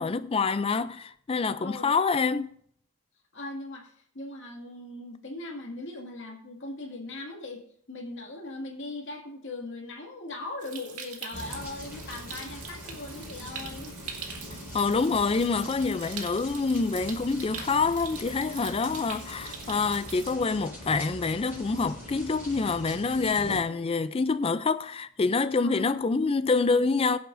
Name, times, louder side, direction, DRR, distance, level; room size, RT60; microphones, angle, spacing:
voice 1, 0.0-2.5 14.7-27.2, left 4 dB, 25° left, 0.3 m, -26 dB
voice 2, 1.6-1.9 3.3-7.6 7.9-13.9 25.6-26.0, left 2 dB, 55° left, 2.1 m, -39 dB
Stream, 10.6-20.3, right 6 dB, 85° right, 2.0 m, -43 dB
sound 1, 11.3-23.6, equal, 10° right, 4.5 m, -42 dB
21.5 x 7.8 x 2.6 m
head